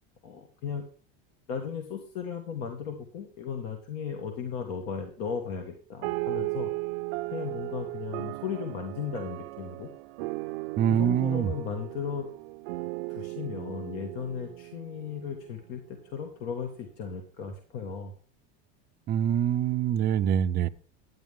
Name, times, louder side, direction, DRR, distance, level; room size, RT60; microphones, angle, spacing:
voice 1, 0.2-0.8 1.5-6.7 7.3-9.9 10.9-12.3 13.1-18.1, left 7 dB, 60° left, 1.7 m, -36 dB
sound 1, 6.0-15.8, right 23 dB, 75° right, 0.6 m, -36 dB
voice 2, 10.8-11.5 19.1-20.7, right 9 dB, 30° right, 0.5 m, -24 dB
10.5 x 9.6 x 3.6 m
supercardioid pair, 140°, 32 cm